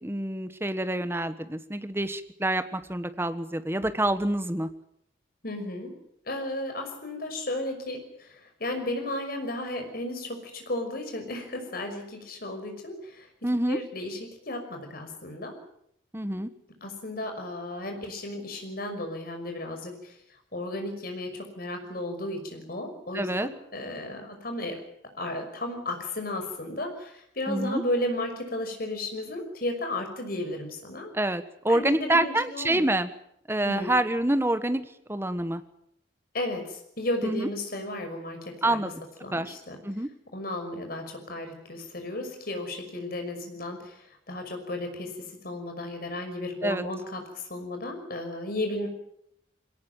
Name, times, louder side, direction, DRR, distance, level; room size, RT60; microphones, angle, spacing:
voice 1, 0.0-4.7 13.4-13.8 16.1-16.5 23.1-23.5 27.5-27.8 31.1-33.1 33.5-35.6 37.2-37.5 38.6-38.9 39.3-39.5 39.8-40.1 46.6-46.8, right 1 dB, 15° right, 10 dB, 1.4 m, -27 dB
voice 2, 5.4-5.9 6.3-13.3 13.7-15.6 16.8-20.1 20.5-24.8 25.2-31.1 31.7-32.8 33.6-34.0 36.3-38.9 39.2-39.8 40.3-44.0 44.3-45.1 45.4-48.9, left 1 dB, 50° left, 5 dB, 5.9 m, -34 dB
22.5 x 18.5 x 9.0 m, 0.73 s
head